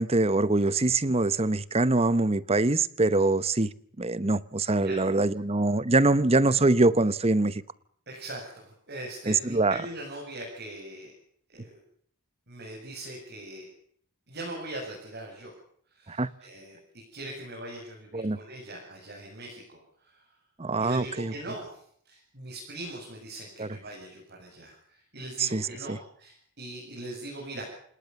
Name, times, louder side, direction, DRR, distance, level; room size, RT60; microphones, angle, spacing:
voice 1, 0.0-3.7 4.0-7.6 9.3-9.8 16.1-16.3 18.1-18.4 20.6-21.3 23.6-23.7 25.4-26.0, right 2 dB, 30° right, 0.9 m, -24 dB
voice 2, 8.1-11.1 11.5-11.8 12.5-13.7 14.3-15.5 15.9-20.2 20.8-21.8 22.0-27.6, right 1 dB, 50° right, 8.0 m, -41 dB
28.5 x 18.5 x 7.1 m
head